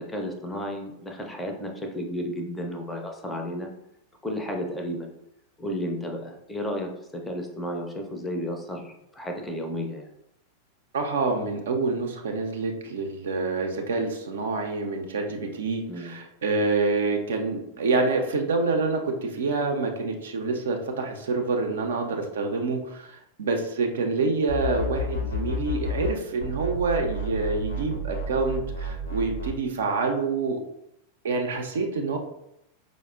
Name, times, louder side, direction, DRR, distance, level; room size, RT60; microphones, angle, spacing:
voice 1, 0.0-3.7 4.2-5.1 5.6-10.1 15.9-16.2, equal, 10° left, 2 dB, 0.5 m, -33 dB
voice 2, 10.9-30.6 31.2-32.2, right 3 dB, 60° right, 3 dB, 0.4 m, -27 dB
sound 1, 24.5-26.1 26.4-29.5, left 1 dB, 65° left, 0.6 m, -31 dB
4.6 x 2.0 x 2.3 m, 0.80 s
figure-of-eight pair, 90°, 0 cm